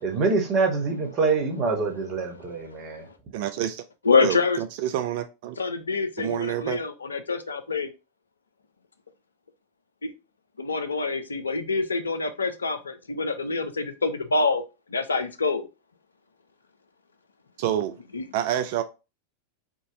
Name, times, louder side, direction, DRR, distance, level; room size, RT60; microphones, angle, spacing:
voice 1, 0.0-3.0, right 4 dB, 35° right, 1.1 m, -25 dB
voice 2, 3.3-3.7 4.2-5.6 6.2-6.8 17.6-18.0 18.3-18.8, right 11 dB, 50° right, 0.4 m, -28 dB
voice 3, 4.1-4.6 5.6-7.9 10.0-10.1 10.6-14.6 14.9-15.6 18.1-18.2, left 4 dB, 75° left, 0.5 m, -26 dB
3.8 x 2.5 x 3.7 m
figure-of-eight pair, 90°, 0 cm